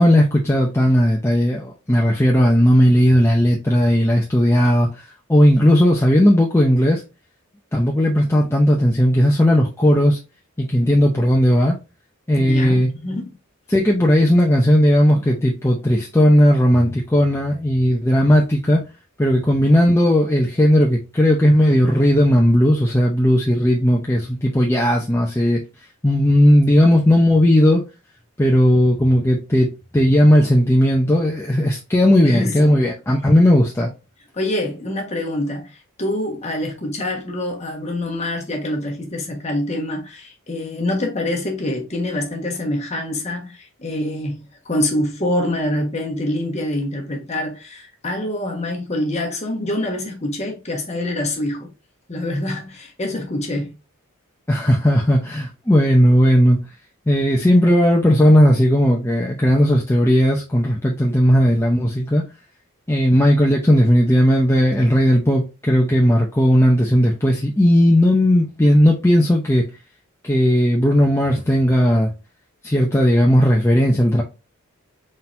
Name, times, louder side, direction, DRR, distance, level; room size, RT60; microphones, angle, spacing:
voice 1, 0.0-7.0 7.7-10.2 10.6-11.8 12.3-12.9 13.7-18.8 19.2-25.6 26.0-27.8 28.4-33.9 54.5-56.6 57.1-62.2 62.9-69.7 70.2-72.1 72.6-74.2, equal, 10° left, 0.5 m, -16 dB
voice 2, 12.4-13.3 32.2-32.8 34.3-51.7 52.1-53.8, left 1 dB, 30° left, 1.2 m, -25 dB
4.3 x 3.8 x 2.6 m
head